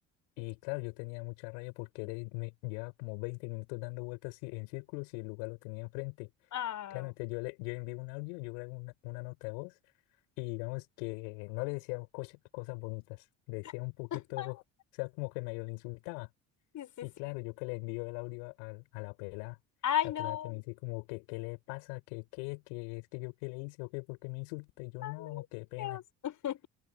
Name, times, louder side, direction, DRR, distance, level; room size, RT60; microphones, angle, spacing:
voice 1, 0.4-6.3 6.9-9.7 10.4-14.6 14.9-16.3 17.0-19.6 20.0-26.0, left 35 dB, 85° left, 8.0 m, -40 dB
voice 2, 6.5-7.1 14.1-14.5 16.7-17.1 19.8-20.6 25.0-25.4 25.8-26.7, left 10 dB, 55° left, 6.0 m, -35 dB
supercardioid pair, 70°, 36 cm